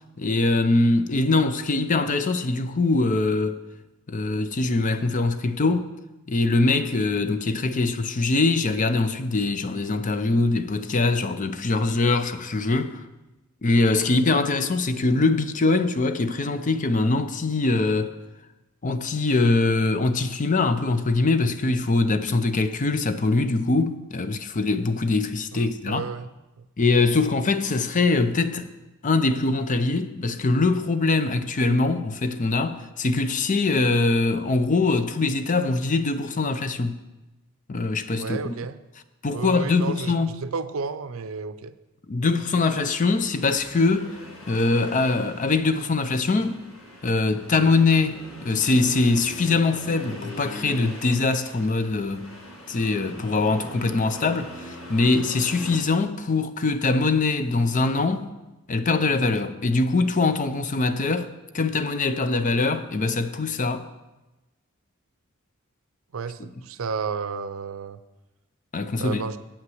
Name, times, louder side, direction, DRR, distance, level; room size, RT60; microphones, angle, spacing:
voice 1, 0.2-3.6 4.1-5.9 6.3-13.0 13.6-18.1 18.8-26.0 26.8-28.7 29.0-37.0 37.7-38.4 39.2-40.4 42.1-44.1 44.5-46.6 47.0-52.3 52.7-58.3 58.7-61.3 61.5-63.9 68.7-69.2, left 3 dB, 40° left, 0.5 m, -23 dB
voice 2, 25.5-26.3 26.6-26.7 38.2-38.8 39.3-41.7 66.1-68.0 69.0-69.4, right 5 dB, 70° right, 0.5 m, -32 dB
Accelerating revving vroom, 42.3-55.8, left 1 dB, 90° left, 1.9 m, -41 dB
8.5 x 5.8 x 7.7 m
head